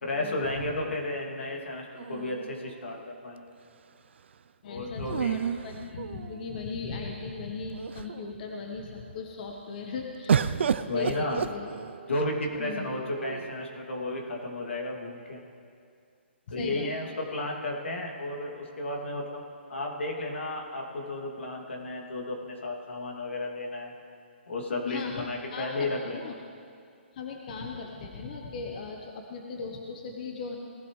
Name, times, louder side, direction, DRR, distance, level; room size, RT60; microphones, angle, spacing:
voice 1, 0.0-3.0 3.2-3.5 4.6-5.4 10.9-11.5 12.1-15.4 16.5-19.4 19.7-23.9 24.5-26.3, left 2 dB, 85° left, -1 dB, 2.6 m, -33 dB
sound 1, 2.0-3.1 5.1-6.6 7.3-7.4 7.7-8.3 10.3-12.2 13.1-13.8, right 7 dB, 70° right, 0.5 m, -31 dB
voice 2, 4.6-10.4 10.9-11.7 12.6-12.9 16.5-17.1 24.9-25.2 25.5-26.3 27.1-30.6, left 4 dB, 45° left, 1 dB, 1.2 m, -37 dB
18.5 x 12.0 x 3.2 m, 2.3 s
hypercardioid pair, 155°, 6 cm